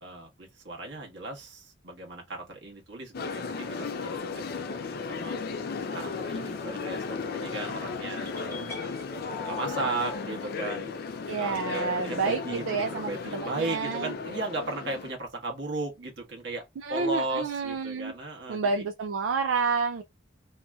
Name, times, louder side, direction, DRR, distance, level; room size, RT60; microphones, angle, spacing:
voice 1, 0.0-4.4 4.7-5.4 5.9-8.8 9.4-11.0 11.4-16.6 16.9-18.8, right 2 dB, 60° right, 1.3 m, -36 dB
sound 1, 3.1-15.1, left 4 dB, 50° left, 0.4 m, -35 dB
sound 2, 8.2-10.2, left 4 dB, 15° left, 0.8 m, -41 dB
voice 2, 11.3-14.1 16.8-18.1 18.5-20.0, right 5 dB, 85° right, 0.4 m, -29 dB
2.9 x 2.6 x 2.3 m
head